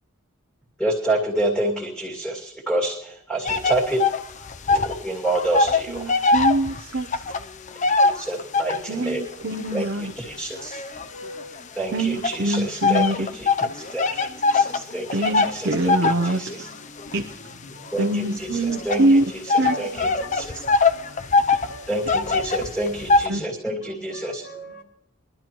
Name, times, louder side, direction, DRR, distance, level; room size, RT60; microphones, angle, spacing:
voice 1, 0.8-4.0 4.7-6.2 8.0-9.2 9.7-10.8 11.8-13.5 13.7-16.7 17.9-20.5 21.9-24.4, right 2 dB, ahead, 2.3 m, -28 dB
sound 1, 3.4-5.0 5.3-9.0 9.5-11.6 12.2-23.3, left 3 dB, 35° left, 0.5 m, -22 dB
voice 2, 5.9-7.1 8.9-10.1 11.9-13.3 15.1-16.4 17.1-17.2 18.0-19.2 19.6-19.8 23.3-23.4, right 1 dB, 55° right, 0.7 m, -23 dB
voice 3, 11.1-11.5 19.7-20.5 20.9-21.1 21.5-21.9 23.3-23.5 24.2-24.8, equal, 60° left, 2.8 m, -38 dB
22.0 x 12.0 x 3.1 m
head